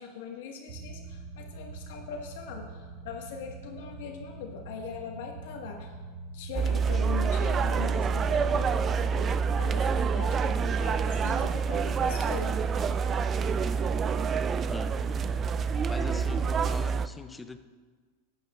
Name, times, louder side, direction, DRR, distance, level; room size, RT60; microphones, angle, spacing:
voice 1, 0.0-5.9 6.3-12.6, left 6 dB, 70° left, 2 dB, 1.7 m, -41 dB
sound 1, 0.7-16.7, right 3 dB, 65° right, 1.7 m, -44 dB
sound 2, 6.5-17.1, right 5 dB, 30° right, 0.4 m, -27 dB
voice 2, 15.9-17.6, left 3 dB, 10° left, 10 dB, 0.6 m, -41 dB
14.5 x 9.7 x 2.5 m, 1.4 s
hypercardioid pair, 100°, 0 cm